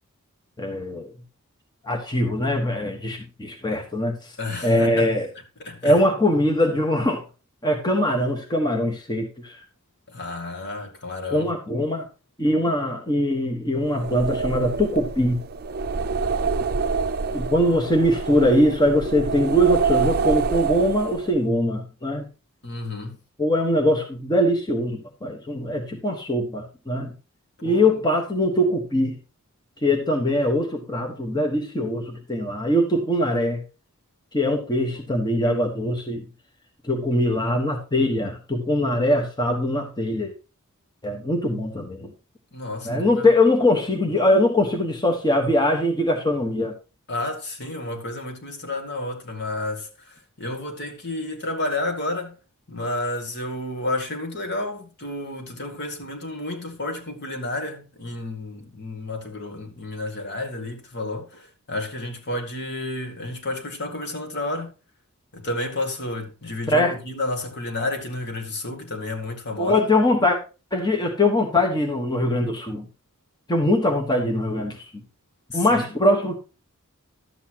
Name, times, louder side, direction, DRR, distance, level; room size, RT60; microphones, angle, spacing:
voice 1, 0.6-1.1 1.8-4.3 4.6-5.3 5.8-7.2 7.6-9.6 11.3-12.0 12.4-15.4 17.3-22.2 23.4-27.1 27.6-29.2 29.8-33.6 34.3-36.3 36.8-40.3 41.0-42.1 42.8-46.7 66.7-66.9 69.6-70.4 70.7-72.9 73.5-74.8 75.5-76.4, left 1 dB, 20° left, 1.3 m, -22 dB
voice 2, 4.4-5.1 5.6-6.0 10.1-11.5 22.6-23.2 27.6-28.0 42.5-43.3 47.1-52.4 52.7-64.7 65.3-69.8 75.5-75.8, left 2 dB, 55° left, 2.0 m, -31 dB
sound 1, 13.8-21.4, right 5 dB, 45° right, 0.5 m, -26 dB
12.0 x 8.2 x 2.9 m
head